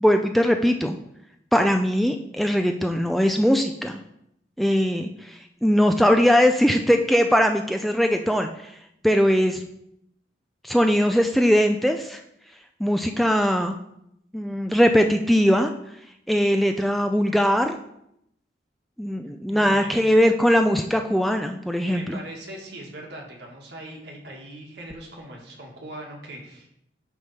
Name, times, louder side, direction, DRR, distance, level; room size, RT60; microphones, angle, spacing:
voice 1, 0.0-1.0 1.5-4.0 4.6-8.8 9.0-9.6 10.6-12.2 12.8-13.8 14.3-15.7 16.3-17.8 19.0-22.2, equal, ahead, 5 dB, 0.3 m, -20 dB
voice 2, 19.5-20.2 21.8-26.7, right 1 dB, 70° right, -1 dB, 1.8 m, -40 dB
9.3 x 3.5 x 5.6 m, 0.77 s
head